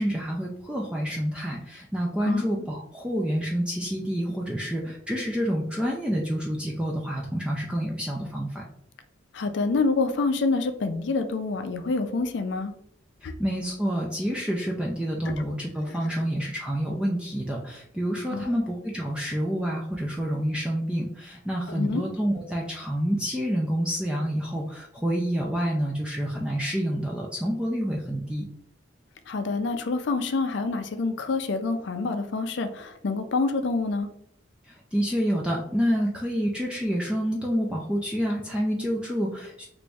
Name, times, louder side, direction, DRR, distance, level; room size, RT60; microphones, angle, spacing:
voice 1, 0.0-8.6 13.2-28.5 34.6-39.7, equal, 5° right, -2 dB, 0.3 m, -28 dB
voice 2, 9.3-12.7 13.2-13.3 15.3-15.5 18.3-18.4 21.8-22.0 29.3-34.1, left 3 dB, 65° left, 8 dB, 0.4 m, -27 dB
3.0 x 2.6 x 3.4 m, 0.67 s
head